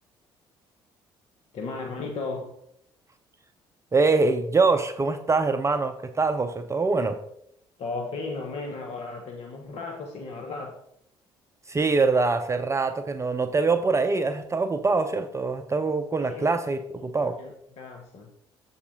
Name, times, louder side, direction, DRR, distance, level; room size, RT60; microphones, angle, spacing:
voice 1, 1.5-2.5 7.8-10.7 16.3-16.5 17.2-18.3, left 3 dB, 60° left, 2 dB, 1.0 m, -35 dB
voice 2, 3.9-7.2 11.7-17.3, right 3 dB, 25° right, 8 dB, 0.6 m, -24 dB
7.1 x 4.3 x 5.1 m, 0.74 s
hypercardioid pair, 55°, 12 cm